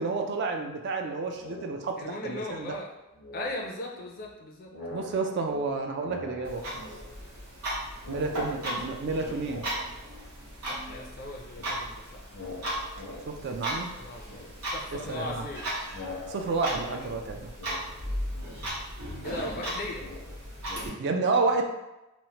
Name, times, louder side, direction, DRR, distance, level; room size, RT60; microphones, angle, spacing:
voice 1, 0.0-2.7 4.9-6.8 8.1-9.6 13.3-13.9 14.9-15.4 16.3-17.5 21.0-21.6, right 3 dB, 50° right, 4 dB, 0.3 m, -30 dB
sound 1, 1.3-2.2 2.5-4.4 4.6-7.7 8.0-10.5 10.8-20.8, left 2 dB, 85° left, 0.6 m, -45 dB
voice 2, 2.0-2.9 3.3-4.7 8.4-8.5 8.9-9.1 10.7-12.2 13.9-14.5 14.7-15.6 16.8-17.0 19.2-20.0, left 2 dB, 40° left, 0 dB, 0.4 m, -38 dB
Clock, 6.4-20.9, right 1 dB, 80° right, 1.3 m, -37 dB
3.0 x 2.0 x 2.8 m, 0.96 s
head